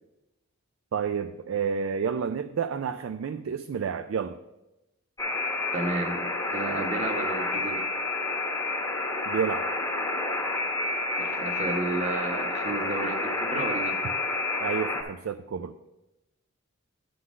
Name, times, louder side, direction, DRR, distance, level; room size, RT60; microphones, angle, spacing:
voice 1, 0.9-4.4 9.3-9.7 14.6-15.7, right 6 dB, 65° right, 8 dB, 0.4 m, -30 dB
Alarm, 5.2-15.0, left 2 dB, 15° left, 1.0 m, -29 dB
voice 2, 5.7-7.8 11.2-14.0, right 2 dB, 35° right, 2 dB, 1.1 m, -32 dB
9.3 x 3.9 x 6.2 m, 0.96 s
head